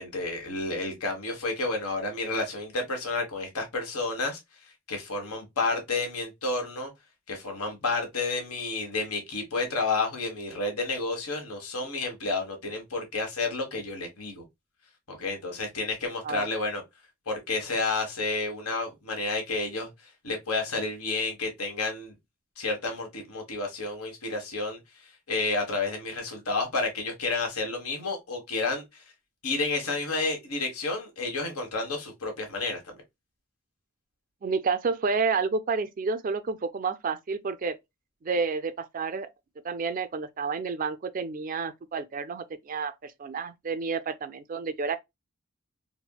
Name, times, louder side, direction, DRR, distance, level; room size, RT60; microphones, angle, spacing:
voice 1, 0.0-4.4 4.9-6.9 7.3-14.4 15.1-16.8 17.3-19.9 20.2-22.1 22.6-24.8 25.3-29.0 29.4-32.9, left 3 dB, 90° left, 1.3 m, -30 dB
voice 2, 34.4-37.8 38.2-39.3 39.6-45.0, right 4 dB, 40° right, 0.3 m, -30 dB
4.2 x 2.0 x 2.2 m
head